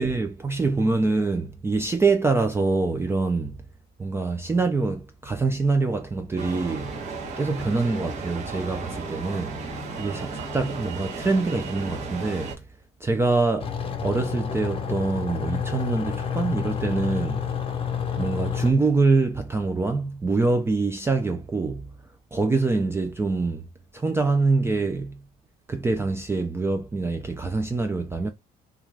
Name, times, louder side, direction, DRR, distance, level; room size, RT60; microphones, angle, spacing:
voice 1, 0.0-3.6 4.0-6.9 7.4-9.6 10.0-12.6 13.0-13.8 14.0-17.4 18.2-21.9 22.3-23.6 23.9-25.2 25.7-28.3, right 3 dB, 15° right, 0.4 m, -25 dB
sound 1, 6.4-12.6, right 3 dB, 45° right, 0.9 m, -34 dB
sound 2, 13.6-18.7, left 7 dB, 35° left, 0.7 m, -29 dB
2.4 x 2.3 x 3.0 m
cardioid pair, 110°, 17 cm